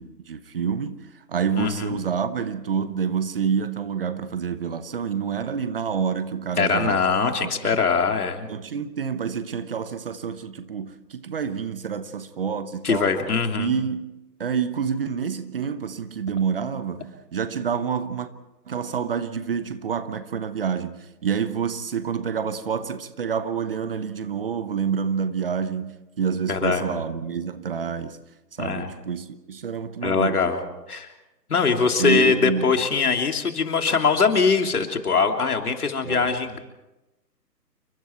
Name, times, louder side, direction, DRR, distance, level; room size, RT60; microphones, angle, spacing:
voice 1, 0.0-7.0 7.4-7.5 8.5-13.1 13.6-18.3 18.7-28.2 28.6-30.5 32.0-32.8 36.0-36.3, right 7 dB, 35° right, 1.0 m, -28 dB
voice 2, 1.6-2.0 6.6-8.5 12.8-13.7 26.5-27.0 28.6-28.9 30.0-30.6 30.9-31.1 31.5-36.6, left 5 dB, 60° left, 3.2 m, -22 dB
29.0 x 24.0 x 4.6 m
figure-of-eight pair, 145°, 50 cm